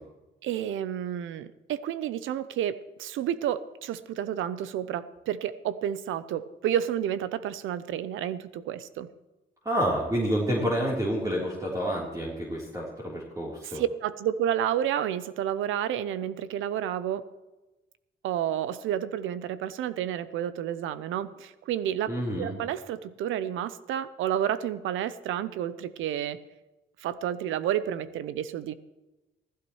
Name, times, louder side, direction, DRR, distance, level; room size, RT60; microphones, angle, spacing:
voice 1, 0.4-9.1 13.7-17.2 18.2-22.1 22.4-26.4 27.0-28.7, right 10 dB, 85° right, 15 dB, 0.8 m, -30 dB
voice 2, 9.6-13.8 22.1-22.5, equal, 15° right, -5 dB, 3.7 m, -28 dB
16.5 x 15.0 x 3.2 m, 1.1 s
cardioid pair, 90°, 20 cm